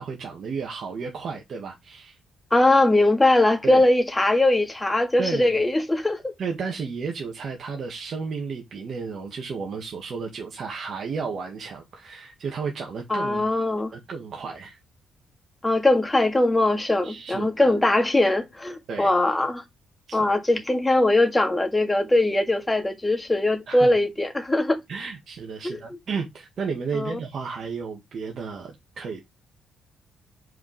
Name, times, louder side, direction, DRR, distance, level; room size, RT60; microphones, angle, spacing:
voice 1, 0.0-2.2 3.6-3.8 5.2-5.6 6.4-13.4 13.9-14.8 17.0-17.7 18.9-19.1 20.1-20.2 23.7-23.9 24.9-29.2, right 5 dB, 55° right, 1.8 m, -33 dB
voice 2, 2.5-6.3 13.1-14.0 15.6-19.6 20.1-24.8 25.6-26.0 26.9-27.2, left 2 dB, 15° left, 1.8 m, -21 dB
5.1 x 4.8 x 4.8 m
cardioid pair, 90°, 0 cm